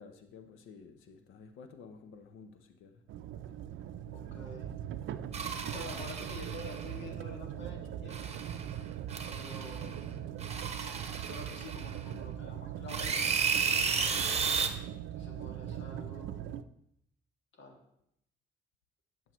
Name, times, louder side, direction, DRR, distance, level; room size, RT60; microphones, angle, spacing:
voice 1, 0.0-3.0, left 5 dB, 85° left, 0.7 m, -52 dB
sound 1, 3.1-16.6, right 10 dB, 75° right, 0.5 m, -41 dB
voice 2, 4.1-4.8 5.7-8.4 9.3-10.1 11.3-13.8 15.1-16.5 17.5-17.9, left 2 dB, 70° left, 1.8 m, -48 dB
sound 2, 5.3-6.9 8.1-8.7 9.1-9.9 10.4-12.1 12.9-14.7, right 5 dB, 30° right, 0.9 m, -33 dB
9.3 x 7.4 x 3.0 m
cardioid pair, 90°, 20 cm